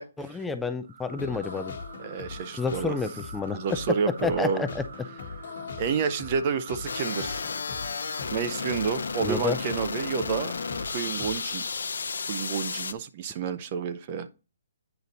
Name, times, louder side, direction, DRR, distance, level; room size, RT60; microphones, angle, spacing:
voice 1, 0.2-1.8 2.5-3.6 4.2-4.8 9.2-9.6, left 4 dB, 5° left, 0.4 m, -30 dB
sound 1, 0.8-11.7, right 5 dB, 55° right, 1.6 m, -46 dB
sound 2, 1.0-11.4, left 5 dB, 60° left, 1.2 m, -41 dB
voice 2, 2.0-3.0 3.5-4.7 5.8-7.4 8.3-10.5 10.9-11.7 12.3-14.3, right 6 dB, 35° right, 0.6 m, -29 dB
sound 3, 6.9-12.9, left 5 dB, 80° left, 0.6 m, -33 dB
8.9 x 3.9 x 4.1 m
hypercardioid pair, 155°, 0 cm